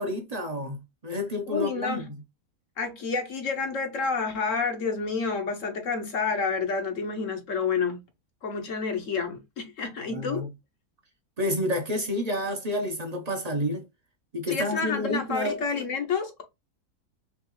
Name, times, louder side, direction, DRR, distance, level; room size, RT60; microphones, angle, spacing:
voice 1, 0.0-2.1 10.1-10.5 11.4-13.8 14.3-15.6, left 1 dB, 35° right, 0.7 m, -29 dB
voice 2, 1.5-2.1 2.8-8.0 8.4-10.5 14.5-16.4, left 5 dB, 55° left, 1.1 m, -29 dB
5.4 x 2.5 x 3.0 m
omnidirectional pair, 1.8 m